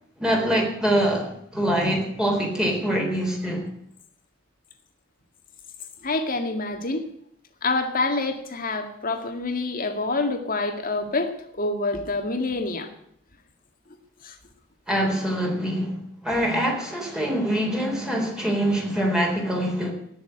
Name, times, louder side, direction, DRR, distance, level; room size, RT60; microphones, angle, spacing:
voice 1, 0.2-3.7 14.9-16.0 16.2-19.9, equal, 5° right, 0 dB, 3.9 m, -24 dB
voice 2, 6.0-7.0 7.6-12.9 14.2-14.4, left 3 dB, 45° left, 6 dB, 2.0 m, -27 dB
17.5 x 7.0 x 9.8 m, 0.70 s
head